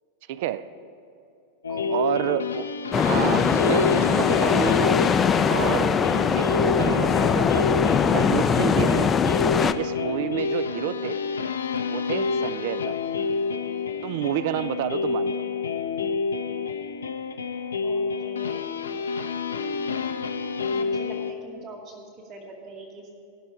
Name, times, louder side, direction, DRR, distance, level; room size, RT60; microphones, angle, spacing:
voice 1, 0.3-0.7 1.9-2.7 3.0-5.0 5.5-7.7 8.1-9.1 9.6-11.2 11.9-13.0 14.0-15.5, right 12 dB, 50° right, 15 dB, 0.4 m, -29 dB
sound 1, 1.6-21.3, left 5 dB, 70° left, 0.6 m, -28 dB
voice 2, 1.7-2.3 17.8-18.7 20.7-23.1, right 2 dB, 30° right, -6 dB, 2.1 m, -43 dB
sound 2, 2.9-9.7, left 6 dB, 20° left, 0.4 m, -21 dB
17.0 x 6.3 x 4.9 m, 2.6 s
figure-of-eight pair, 90°, 0 cm